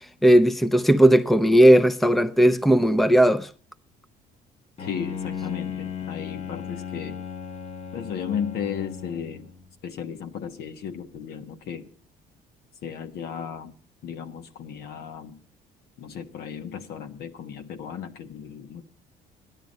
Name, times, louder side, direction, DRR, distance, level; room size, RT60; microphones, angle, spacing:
voice 1, 0.2-3.5, right 1 dB, ahead, 0.7 m, -17 dB
voice 2, 4.8-7.2 7.9-9.5 9.8-11.9 12.8-13.8 14.0-15.4 16.0-18.8, left 8 dB, 70° left, 1.4 m, -35 dB
Bowed string instrument, 4.8-9.7, left 7 dB, 40° left, 1.1 m, -36 dB
13.0 x 10.5 x 5.3 m
cardioid pair, 110°, 17 cm